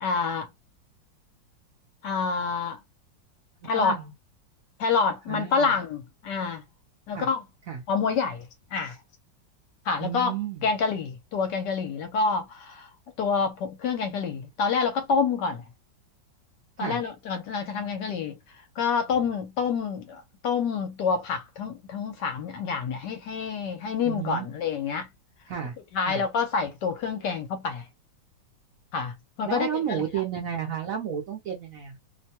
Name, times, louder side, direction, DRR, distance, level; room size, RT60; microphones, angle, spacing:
voice 1, 0.0-0.5 2.0-2.8 3.6-4.0 4.8-6.6 7.1-7.4 7.9-8.5 8.7-9.0 9.9-12.9 13.2-15.6 16.8-18.4 18.8-25.1 25.9-27.8 28.9-29.1 29.4-30.0, left 5 dB, 70° left, 1.2 m, -27 dB
voice 2, 3.6-4.1 5.3-5.8 7.1-7.3 7.7-7.8 10.0-10.7 16.8-17.0 24.0-24.5 25.5-25.8 26.1-26.2 29.4-32.0, right 8 dB, 60° right, 0.9 m, -32 dB
3.1 x 2.2 x 2.7 m
omnidirectional pair, 2.0 m